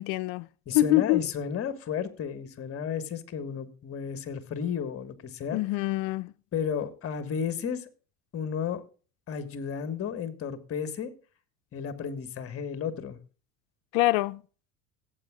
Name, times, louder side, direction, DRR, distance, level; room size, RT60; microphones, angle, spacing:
voice 1, 0.0-0.5 0.7-1.2 5.5-6.3 13.9-14.4, left 18 dB, 65° left, 0.5 m, -25 dB
voice 2, 0.7-5.6 6.5-7.9 8.3-8.8 9.3-11.1 11.7-13.2, left 7 dB, 35° left, 1.4 m, -33 dB
17.5 x 8.1 x 2.3 m
supercardioid pair, 100°, 38 cm